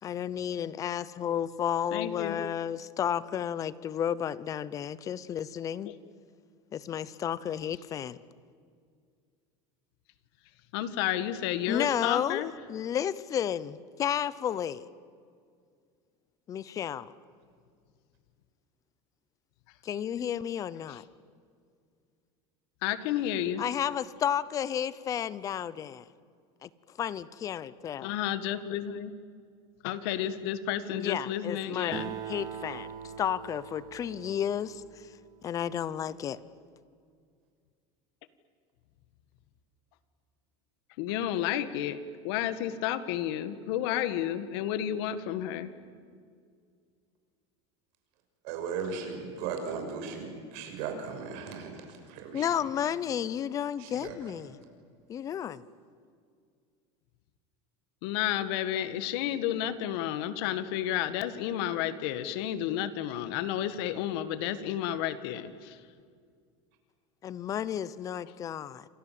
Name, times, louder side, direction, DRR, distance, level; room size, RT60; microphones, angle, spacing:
voice 1, 0.0-5.9 6.7-8.2 11.7-12.4 12.7-14.9 16.5-17.1 19.8-21.0 23.6-26.1 26.6-26.7 27.0-28.1 30.9-32.9 33.2-35.1 35.4-36.4 52.3-54.6 55.1-55.6 67.2-68.8, left 9 dB, 25° left, 0.7 m, -32 dB
voice 2, 1.9-2.4 5.9-6.0 10.7-12.5 20.9-21.0 22.8-23.6 28.0-29.1 29.8-32.1 41.0-45.7 58.0-65.8, left 11 dB, 60° left, 1.7 m, -31 dB
Acoustic guitar, 31.9-35.7, right 8 dB, 25° right, 1.6 m, -42 dB
voice 3, 48.4-52.7 53.8-54.4, right 5 dB, 55° right, 6.1 m, -37 dB
29.0 x 26.0 x 7.7 m
supercardioid pair, 165°, 15 cm